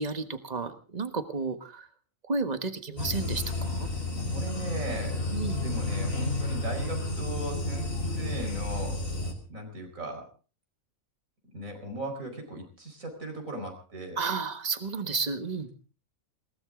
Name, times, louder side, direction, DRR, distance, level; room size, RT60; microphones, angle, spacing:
voice 1, 0.0-1.9 2.3-3.9 5.3-5.6 14.2-15.7, right 4 dB, 30° right, 9 dB, 1.5 m, -32 dB
sound 1, 3.0-9.3, left 2 dB, 75° left, 4.1 m, -31 dB
voice 2, 4.2-5.2 5.6-9.0 9.5-10.2 11.5-14.2, right 2 dB, 75° right, 4 dB, 5.2 m, -38 dB
21.0 x 18.5 x 3.8 m, 0.36 s
omnidirectional pair, 1.4 m